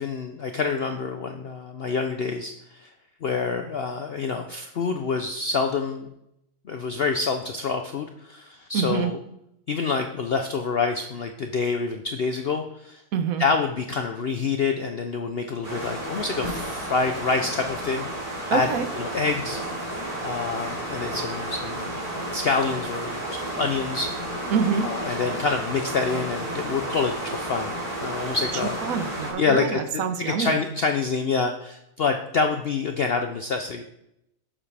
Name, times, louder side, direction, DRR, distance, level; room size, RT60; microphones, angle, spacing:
voice 1, 0.0-2.9 3.2-6.1 6.6-9.2 9.7-13.0 13.4-18.0 18.5-18.7 19.0-19.6 20.2-22.0 22.3-24.2 24.8-28.8 29.4-29.8 30.2-33.8, left 4 dB, 60° left, 5 dB, 0.6 m, -27 dB
voice 2, 8.7-9.1 13.1-13.4 18.5-18.9 24.5-24.9 28.8-30.6, right 6 dB, 70° right, 8 dB, 1.3 m, -26 dB
sound 1, 15.6-29.3, right 1 dB, 35° right, 4.2 m, -32 dB
11.0 x 7.1 x 3.4 m, 0.80 s
omnidirectional pair, 1.6 m